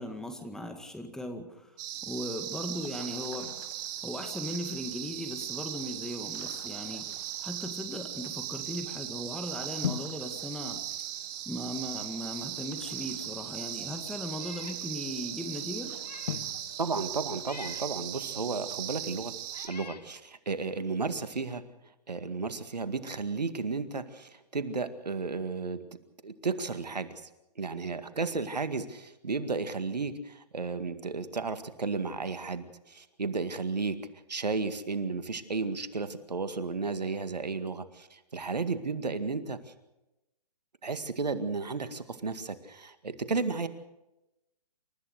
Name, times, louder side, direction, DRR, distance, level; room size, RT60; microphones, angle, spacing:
voice 1, 0.0-3.5 4.0-10.8 11.5-16.0, left 1 dB, 5° left, 5 dB, 1.9 m, -38 dB
sound 1, 1.8-19.7, right 12 dB, 30° right, 2.0 m, -38 dB
sound 2, 1.9-18.7, left 9 dB, 55° left, 1.3 m, -46 dB
Meow, 14.3-14.8 15.3-15.4 15.9-16.4 17.4-17.9 18.8-18.9 19.5-20.1, left 5 dB, 80° left, 2.1 m, -47 dB
voice 2, 16.8-19.3 19.6-21.6 22.1-25.8 26.2-27.3 27.6-34.0 34.3-39.6 40.8-43.7, right 4 dB, 85° right, 10 dB, 2.0 m, -33 dB
28.5 x 14.5 x 6.6 m, 0.92 s
hypercardioid pair, 135°, 21 cm